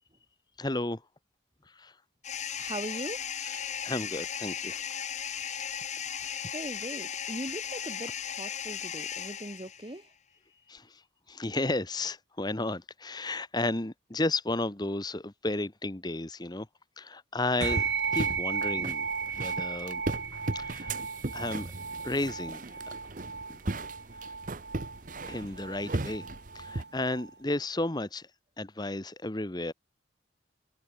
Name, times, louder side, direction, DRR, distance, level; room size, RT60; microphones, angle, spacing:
voice 1, 0.6-1.0 1.7-1.9 3.4-5.0 5.4-5.6 10.7-11.0 11.3-16.7 17.0-19.1 19.4-20.0 20.3-21.0 21.3-21.7 22.0-22.9 23.5-23.6 24.2-24.3 25.3-26.3 26.5-28.3 28.6-29.7, left 2 dB, 20° left, 1.2 m, -33 dB
sound 1, 2.2-10.0, left 8 dB, 40° left, 2.6 m, -36 dB
voice 2, 2.6-3.3 6.5-10.1, right 1 dB, 25° right, 1.6 m, -40 dB
sound 2, 17.6-26.8, right 2 dB, 45° right, 1.0 m, -37 dB
sound 3, 17.6-27.3, right 5 dB, 65° right, 3.6 m, -35 dB
head